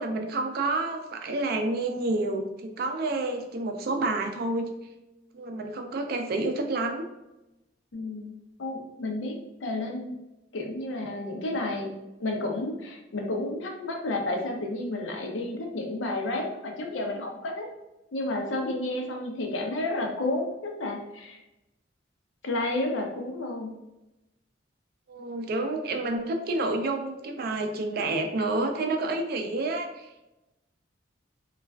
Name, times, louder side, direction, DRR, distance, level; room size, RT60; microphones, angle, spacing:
voice 1, 0.0-4.7 5.3-7.0 25.1-30.3, right 2 dB, 55° right, 4 dB, 0.4 m, -29 dB
voice 2, 7.9-8.3 8.6-10.2 10.5-17.7 18.1-21.4 22.4-23.7, left 2 dB, 85° left, 2 dB, 0.6 m, -31 dB
3.2 x 2.3 x 2.2 m, 0.95 s
head